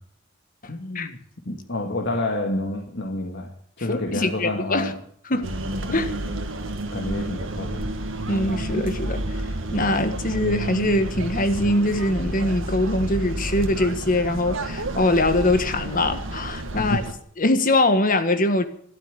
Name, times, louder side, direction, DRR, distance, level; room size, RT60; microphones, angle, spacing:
voice 1, 0.7-1.2 1.5-4.9 5.4-5.5 5.9-6.1 6.9-7.9 16.8-17.0, left 2 dB, 60° left, 1.9 m, -29 dB
voice 2, 3.9-4.9 5.3-5.5 5.9-6.1 8.3-17.0 17.4-18.6, left 1 dB, 45° left, 1.5 m, -22 dB
sound 1, 5.4-17.1, right 1 dB, 75° right, 1.7 m, -30 dB
13.0 x 12.0 x 8.3 m
head